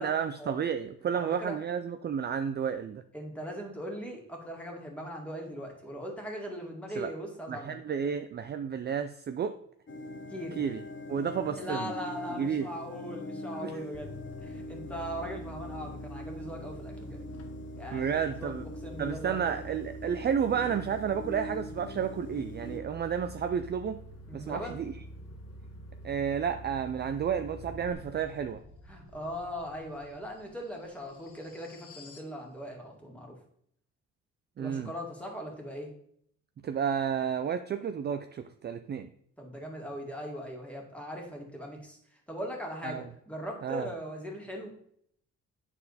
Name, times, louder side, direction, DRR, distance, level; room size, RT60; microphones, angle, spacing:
voice 1, 0.0-3.0 6.9-7.1 7.5-9.6 10.6-10.8 11.1-11.9 12.3-12.7 13.5-13.8 17.9-18.6 19.0-24.0 24.3-24.9 26.0-28.6 34.6-34.9 36.6-39.1 42.8-43.1 43.6-43.9, right 7 dB, 35° right, 9 dB, 0.4 m, -31 dB
voice 2, 1.1-1.6 3.1-7.8 10.3-10.6 11.6-14.2 14.4-17.2 17.8-18.5 18.8-19.4 24.3-24.8 28.9-33.4 34.6-35.9 39.4-42.0 42.3-44.7, equal, 5° left, 0 dB, 2.1 m, -40 dB
C Minor arpeggio stretched, 9.9-22.8, left 1 dB, 40° left, 1.0 m, -43 dB
sound 1, 13.9-27.9, equal, 55° left, 1.5 m, -46 dB
sound 2, 27.5-32.3, left 3 dB, 85° left, 1.2 m, -53 dB
9.0 x 4.2 x 4.1 m, 0.67 s
cardioid pair, 90°, 30 cm